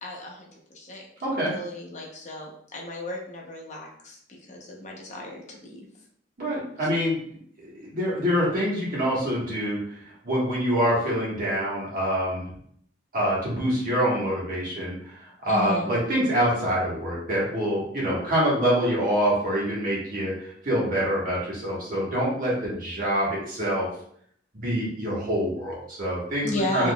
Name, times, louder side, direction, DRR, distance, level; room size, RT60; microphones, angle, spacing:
voice 1, 0.0-1.1 1.5-5.8 15.5-15.9 26.4-26.9, left 1 dB, 40° left, -1 dB, 0.8 m, -34 dB
voice 2, 1.2-1.5 6.4-7.2 7.6-10.0 10.2-12.5 13.1-23.9 24.6-26.9, equal, 50° right, -6 dB, 1.5 m, -26 dB
3.8 x 2.9 x 2.2 m, 0.64 s
head